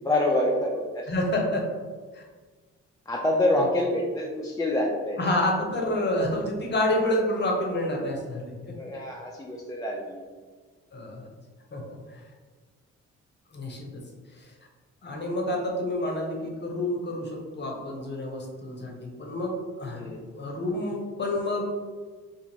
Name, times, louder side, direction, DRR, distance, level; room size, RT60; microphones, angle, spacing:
voice 1, 0.0-1.1 3.1-5.2 8.6-10.2 19.9-20.2, left 1 dB, 10° left, -2 dB, 0.4 m, -26 dB
voice 2, 1.1-1.7 2.1-2.2 3.5-3.6 5.2-8.7 10.9-11.2 11.7-12.2 13.5-13.9 14.4-14.5 15.0-20.1 20.4-21.7, left 1 dB, 35° left, 0 dB, 0.8 m, -28 dB
2.5 x 2.5 x 2.9 m, 1.4 s
supercardioid pair, 55°, 32 cm